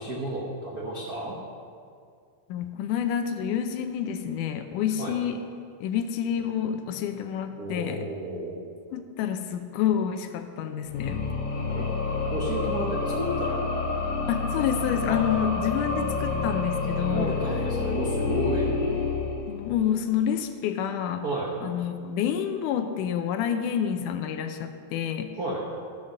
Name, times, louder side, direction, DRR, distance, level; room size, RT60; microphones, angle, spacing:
voice 1, 0.0-1.4 5.0-5.1 7.6-8.6 11.7-11.9 12.3-13.6 15.0-15.2 17.1-18.7 21.2-21.5 25.4-25.6, right 1 dB, 85° right, -3 dB, 0.8 m, -32 dB
voice 2, 2.5-5.4 5.8-8.0 8.9-11.2 14.3-17.4 19.5-21.2 21.6-25.3, left 9 dB, 80° left, 7 dB, 2.1 m, -28 dB
sound 1, 10.8-19.9, left 4 dB, 60° left, 2.9 m, -28 dB
13.5 x 7.2 x 6.4 m, 2.3 s
omnidirectional pair, 3.8 m